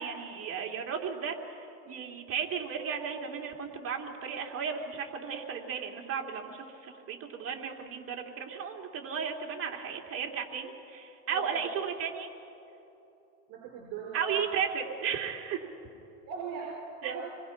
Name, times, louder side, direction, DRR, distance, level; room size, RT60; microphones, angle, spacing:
voice 1, 0.0-12.3 14.1-15.6 17.0-17.1, right 7 dB, 40° right, 1 dB, 3.0 m, -35 dB
voice 2, 11.2-11.6 13.5-14.5 16.3-16.7 17.0-17.2, right 6 dB, 60° right, -2 dB, 5.0 m, -39 dB
26.5 x 21.5 x 6.0 m, 2.9 s
supercardioid pair, 115°, 36 cm